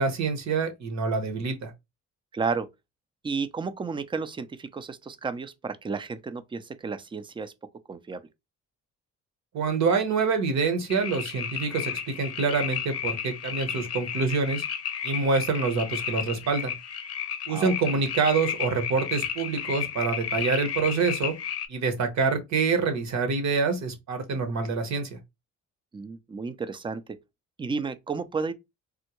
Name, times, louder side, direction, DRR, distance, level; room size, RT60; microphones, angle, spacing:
voice 1, 0.0-1.7 9.5-14.6 15.0-16.7 17.5-21.3 21.7-25.2, right 4 dB, 65° right, 0.9 m, -26 dB
voice 2, 2.3-2.7 3.2-7.5 7.9-8.2 17.5-18.0 25.9-27.0 27.6-28.5, right 4 dB, 15° right, 0.4 m, -32 dB
sound 1, 10.9-21.7, left 8 dB, 55° left, 0.6 m, -33 dB
3.5 x 2.1 x 2.9 m
cardioid pair, 90°, 30 cm